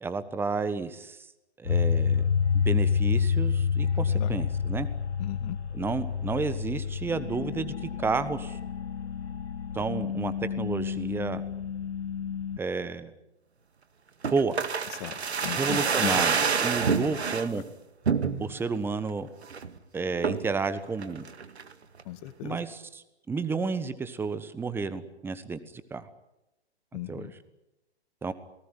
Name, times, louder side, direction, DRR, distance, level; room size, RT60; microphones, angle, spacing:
voice 1, 0.0-1.2 1.6-2.2 2.6-4.9 5.7-7.7 8.0-8.6 9.7-11.4 12.6-13.1 14.3-14.6 15.6-17.6 18.4-19.3 19.9-21.2 22.4-25.6 25.9-26.1 27.1-27.3 28.2-28.3, right 4 dB, 5° right, 13 dB, 1.2 m, -31 dB
sound 1, 1.7-12.6, left 6 dB, 80° left, 1.0 m, -28 dB
voice 2, 5.2-5.6 15.0-16.2 22.1-22.6 26.9-27.3, left 15 dB, 35° left, 11 dB, 1.8 m, -37 dB
sound 2, 14.2-17.5 18.0-18.7 19.1-19.2 19.4-19.7 20.2-20.6 21.0-21.7 22.0-22.1, right 5 dB, 75° right, 2.1 m, -27 dB
27.0 x 19.0 x 9.9 m, 0.95 s
figure-of-eight pair, 125°, 33 cm